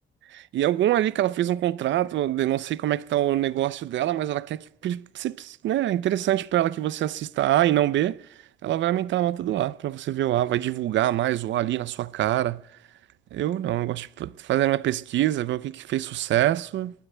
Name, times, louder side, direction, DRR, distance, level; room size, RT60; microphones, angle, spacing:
voice 1, 0.3-8.3 8.6-12.6 13.3-16.9, right 13 dB, 70° right, 0.5 m, -25 dB
21.0 x 20.0 x 2.2 m
cardioid pair, 90°, 20 cm